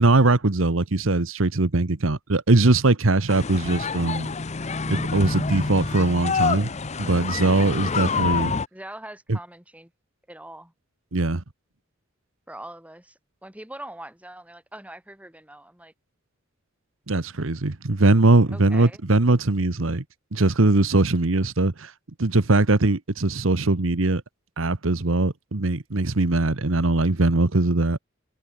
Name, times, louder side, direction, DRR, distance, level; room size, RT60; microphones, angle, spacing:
voice 1, 0.0-4.3 4.9-6.7 7.0-8.5 9.3-9.4 11.1-11.4 17.1-20.0 20.3-21.9 22.2-24.2 24.6-28.0, right 2 dB, 75° right, 1.2 m, -21 dB
sound 1, 3.3-8.7, left 4 dB, 35° left, 0.8 m, -27 dB
voice 2, 8.7-9.9 10.3-10.7 12.5-15.9 18.5-19.0, right 1 dB, 5° right, 5.8 m, -42 dB
head